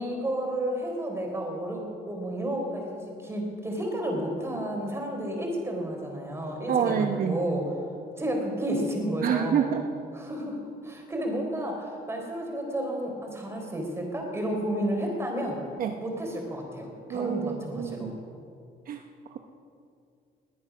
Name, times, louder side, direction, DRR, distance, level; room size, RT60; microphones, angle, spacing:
voice 1, 0.0-7.6 8.2-9.7 10.1-10.6 10.8-15.6 16.0-18.1, right 1 dB, 15° right, 1 dB, 4.1 m, -31 dB
voice 2, 6.7-7.4 9.2-9.9 15.8-16.0 17.1-18.2 18.9-19.0, right 8 dB, 55° right, 5 dB, 0.9 m, -27 dB
20.5 x 9.6 x 6.1 m, 2.4 s
cardioid pair, 110°, 17 cm